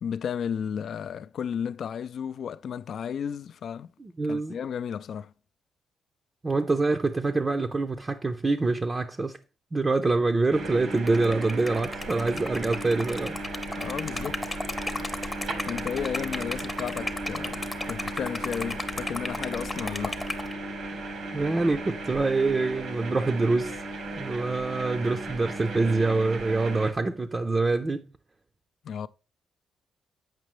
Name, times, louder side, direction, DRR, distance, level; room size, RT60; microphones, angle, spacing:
voice 1, 0.0-3.9 4.3-5.3 13.8-14.4 15.7-20.2 28.8-29.1, left 8 dB, 60° left, 0.3 m, -33 dB
voice 2, 4.0-4.6 6.4-9.4 9.7-13.4 21.3-23.8 24.2-28.1, right 3 dB, 25° right, 0.5 m, -25 dB
sound 1, 10.5-26.9, right 2 dB, 70° right, 1.1 m, -36 dB
Liquid, 11.0-20.5, left 2 dB, 15° left, 0.7 m, -35 dB
7.5 x 5.3 x 3.1 m
cardioid pair, 90°, 0 cm